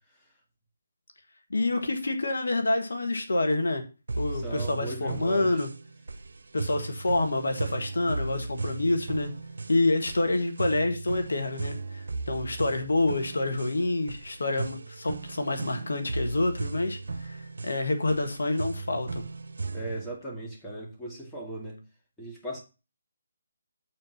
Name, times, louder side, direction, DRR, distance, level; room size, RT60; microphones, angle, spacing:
voice 1, 1.5-3.8 4.2-5.7 6.5-9.3 9.7-19.2, left 2 dB, 75° left, 1.7 m, -27 dB
sound 1, 4.1-20.1, right 3 dB, 65° right, 0.7 m, -36 dB
voice 2, 4.3-5.6 19.7-21.8 22.2-22.6, right 2 dB, 5° left, 2.0 m, -37 dB
7.3 x 4.6 x 5.8 m
figure-of-eight pair, 150°, 0 cm